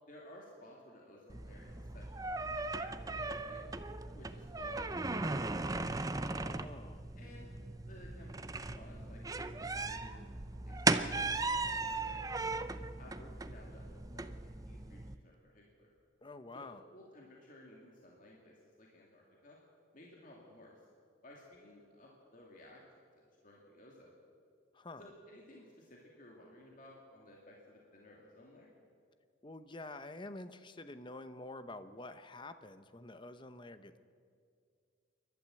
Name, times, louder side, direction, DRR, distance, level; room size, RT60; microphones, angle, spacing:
voice 1, 0.1-3.6 4.1-6.4 7.2-7.6 7.8-10.2 10.6-12.6 13.0-15.9 16.5-19.6 19.9-20.9 21.2-22.8 23.1-24.1 25.0-28.7, left 1 dB, 45° left, -2 dB, 2.5 m, -57 dB
sound 1, 1.3-15.1, right 3 dB, 20° right, 0.6 m, -37 dB
voice 2, 6.3-7.1 16.2-16.8 24.7-25.1 29.4-34.0, left 2 dB, 25° left, 11 dB, 0.8 m, -48 dB
28.0 x 12.0 x 7.8 m, 2.3 s
head